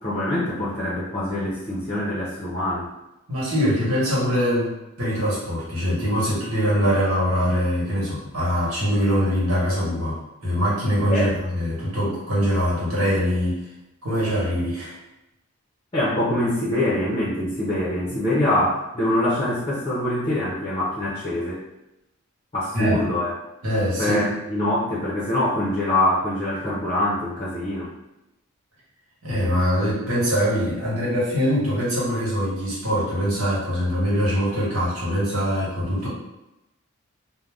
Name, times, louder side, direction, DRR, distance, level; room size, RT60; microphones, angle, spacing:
voice 1, 0.0-2.9 11.1-11.3 15.9-21.6 22.5-23.3 24.0-27.9, left 1 dB, 25° left, -7 dB, 0.6 m, -24 dB
voice 2, 3.3-4.7 5.0-13.6 14.0-14.9 22.7-23.0 23.6-24.2 29.2-36.1, equal, 70° right, -6 dB, 1.2 m, -23 dB
2.6 x 2.1 x 3.3 m, 0.93 s
head